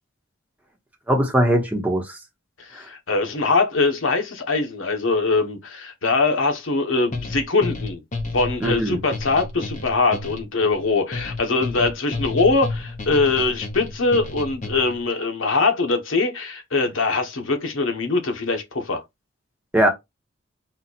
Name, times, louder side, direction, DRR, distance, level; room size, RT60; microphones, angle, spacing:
voice 1, 1.1-2.2 2.8-2.9 8.6-9.0 19.7-19.9, equal, 10° right, 1.0 m, -20 dB
voice 2, 2.6-8.0 8.3-19.0, left 3 dB, 80° left, 1.1 m, -22 dB
sound 1, 7.1-15.0, left 2 dB, 40° left, 0.9 m, -31 dB
4.4 x 2.4 x 4.0 m
head